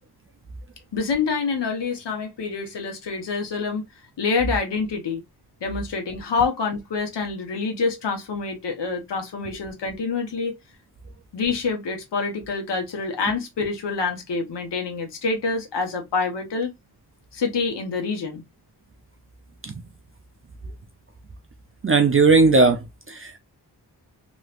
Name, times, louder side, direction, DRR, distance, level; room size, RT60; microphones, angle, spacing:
voice 1, 0.9-3.8 4.2-5.2 5.6-10.6 11.3-16.7 17.3-18.4, left 4 dB, 90° left, 1.1 m, -26 dB
voice 2, 21.8-23.4, right 4 dB, 35° right, 0.4 m, -18 dB
3.1 x 3.0 x 2.4 m
wide cardioid pair, 125°, 41 cm